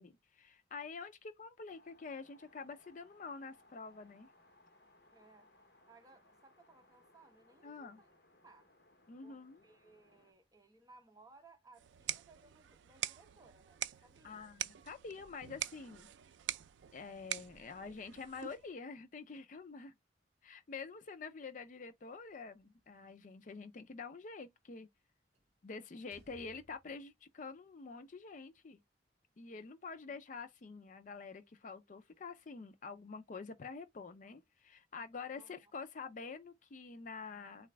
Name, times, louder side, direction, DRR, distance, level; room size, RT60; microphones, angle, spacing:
voice 1, 0.0-4.3 7.6-8.0 9.1-9.6 14.2-16.1 16.9-19.9 20.4-24.9 25.6-28.8 29.4-37.7, left 4 dB, 45° left, 0.4 m, -47 dB
sound 1, 1.7-10.3, left 1 dB, 65° left, 1.0 m, -67 dB
voice 2, 5.1-8.7 9.2-14.5 30.1-30.2 35.3-35.7, right 3 dB, 20° right, 0.8 m, -63 dB
sound 2, 11.8-18.7, right 12 dB, 85° right, 0.3 m, -44 dB
Slam, 22.2-23.2 25.3-25.6 26.0-27.2, equal, 35° right, 1.7 m, -65 dB
3.9 x 2.4 x 3.2 m
head